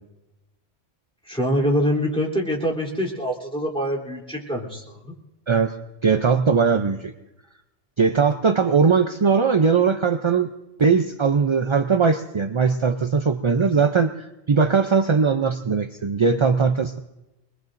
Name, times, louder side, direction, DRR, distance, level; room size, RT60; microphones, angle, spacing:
voice 1, 1.3-5.1, equal, 5° left, -4 dB, 3.3 m, -25 dB
voice 2, 6.0-7.1 8.0-10.5 10.8-17.0, right 5 dB, 40° right, 7 dB, 0.4 m, -20 dB
24.5 x 21.5 x 2.6 m, 0.98 s
omnidirectional pair, 1.1 m